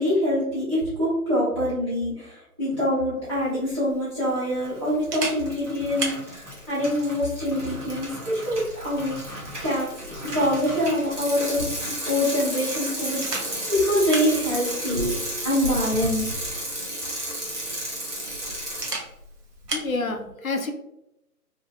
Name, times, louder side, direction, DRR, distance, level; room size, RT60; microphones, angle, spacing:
voice 1, 0.0-11.7 12.0-15.1 15.4-16.4, left 1 dB, 20° right, -14 dB, 1.2 m, -25 dB
Camera, 3.2-19.9, right 2 dB, 90° right, 0.9 m, -38 dB
Bicycle, 4.5-4.9 5.2-18.9, right 1 dB, 50° right, 1.1 m, -33 dB
voice 2, 19.7-20.7, left 3 dB, 60° left, 4 dB, 0.5 m, -28 dB
2.8 x 2.6 x 2.5 m, 0.86 s
figure-of-eight pair, 170°, 47 cm